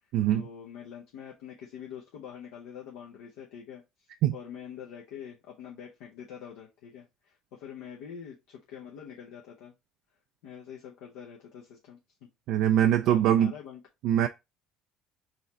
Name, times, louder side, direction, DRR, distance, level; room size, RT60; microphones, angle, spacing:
voice 1, 0.3-9.7 10.4-12.3 13.0-13.8, left 8 dB, 75° left, 0.7 m, -45 dB
voice 2, 12.5-13.5 14.0-14.3, right 10 dB, 70° right, 0.3 m, -22 dB
4.0 x 3.1 x 3.9 m
hypercardioid pair, 70°, 0 cm